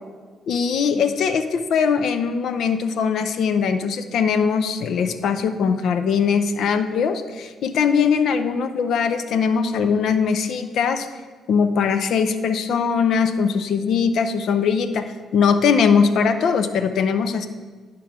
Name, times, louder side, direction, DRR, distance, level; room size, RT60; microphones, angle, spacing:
voice 1, 0.5-11.1 11.5-17.5, left 6 dB, 70° left, 9 dB, 0.5 m, -21 dB
10.0 x 6.0 x 3.6 m, 1.5 s
cardioid pair, 90°, 0 cm